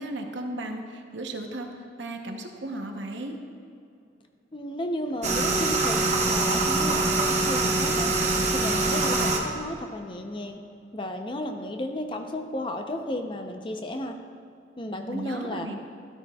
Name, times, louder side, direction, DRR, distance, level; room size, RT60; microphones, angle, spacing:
voice 1, 0.0-1.7 2.0-3.4 15.1-15.7, right 1 dB, 75° right, 3 dB, 0.9 m, -35 dB
voice 2, 4.5-8.1 8.5-10.6 10.9-14.2 14.8-15.7, left 1 dB, 25° left, 5 dB, 0.6 m, -33 dB
sound 1, 5.2-9.4, right 2 dB, 40° right, 1.0 m, -24 dB
13.0 x 12.5 x 2.3 m, 2.4 s
head